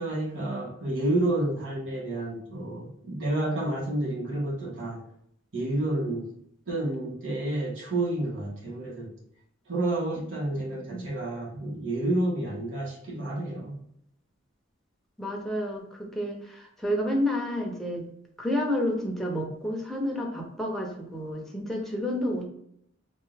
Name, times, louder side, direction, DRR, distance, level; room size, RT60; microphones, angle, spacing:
voice 1, 0.0-5.0 5.5-6.3 6.7-9.1 9.7-13.8, right 1 dB, 75° right, -4 dB, 1.4 m, -30 dB
voice 2, 10.7-11.0 15.2-18.0 18.4-22.5, left 1 dB, ahead, -1 dB, 0.7 m, -30 dB
3.3 x 2.7 x 3.3 m, 0.73 s
head